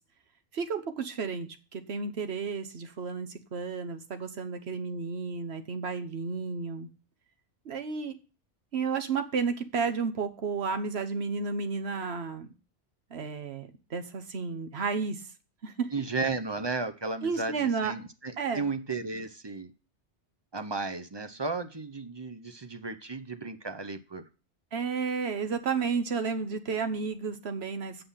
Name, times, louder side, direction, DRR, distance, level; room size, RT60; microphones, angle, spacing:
voice 1, 0.5-6.9 7.6-8.1 8.7-12.5 13.1-15.3 15.6-15.9 17.2-17.9 18.4-18.6 24.7-28.0, right 5 dB, 60° right, 1.3 m, -32 dB
voice 2, 15.9-19.7 20.5-24.3, right 3 dB, 30° right, 0.6 m, -34 dB
8.3 x 5.6 x 5.7 m
omnidirectional pair, 1.2 m